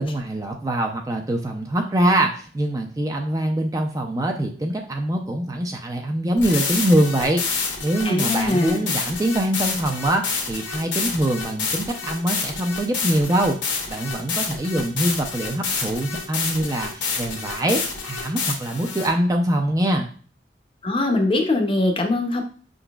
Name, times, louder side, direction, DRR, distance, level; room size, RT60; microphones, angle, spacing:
voice 1, 0.0-7.4 7.8-20.1, right 1 dB, 20° right, 3 dB, 0.4 m, -23 dB
sound 1, 6.4-19.1, left 5 dB, 80° left, 1.1 m, -28 dB
voice 2, 8.0-8.8 20.8-22.4, left 2 dB, 30° left, 3 dB, 0.6 m, -22 dB
5.4 x 3.9 x 2.3 m, 0.42 s
head